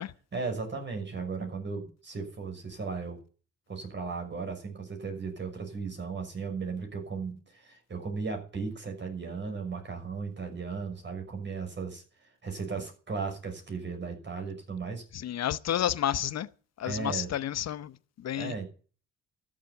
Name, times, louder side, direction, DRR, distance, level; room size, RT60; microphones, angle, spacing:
voice 1, 0.3-3.2 3.7-12.0 12.4-15.0 16.8-17.4 18.3-18.7, right 4 dB, 35° right, 6.0 m, -36 dB
voice 2, 15.2-16.5 16.8-17.9 18.2-18.5, left 11 dB, 60° left, 0.8 m, -30 dB
13.5 x 7.5 x 9.4 m
cardioid pair, 90°, 30 cm